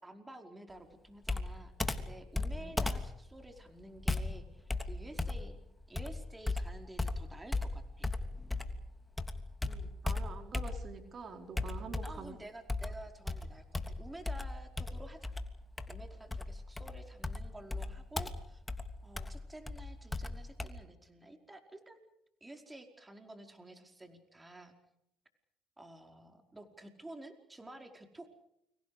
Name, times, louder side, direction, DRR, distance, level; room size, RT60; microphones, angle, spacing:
voice 1, 0.0-5.6 5.9-8.1 12.0-15.3 15.9-18.6 19.0-22.0 22.4-24.7 25.8-28.3, right 1 dB, 15° right, 5 dB, 4.9 m, -51 dB
Computer keyboard, 1.2-8.9 9.2-11.1 11.6-12.3 12.7-20.7, left 2 dB, 15° left, 3.0 m, -37 dB
voice 2, 9.7-12.3, right 4 dB, 45° right, 6 dB, 4.3 m, -47 dB
30.0 x 26.0 x 5.2 m, 0.81 s
supercardioid pair, 80°, 0 cm